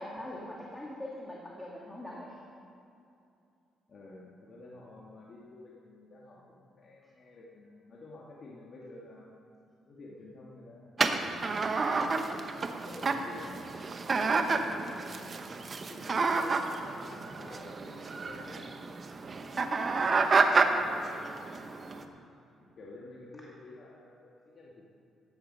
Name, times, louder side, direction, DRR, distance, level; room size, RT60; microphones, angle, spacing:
voice 1, 0.0-2.4 19.8-20.2, left 1 dB, 10° left, -4 dB, 2.3 m, -43 dB
voice 2, 3.9-9.3 9.9-11.5 12.8-13.6 14.2-15.6 15.9-18.8 19.6-20.0 20.7-21.3 21.8-22.2 22.6-24.9, left 2 dB, 50° left, -4 dB, 1.9 m, -50 dB
sound 1, 11.0-22.0, right 4 dB, 40° right, 1.0 m, -30 dB
14.5 x 10.5 x 5.6 m, 2.6 s
cardioid pair, 90°, 0 cm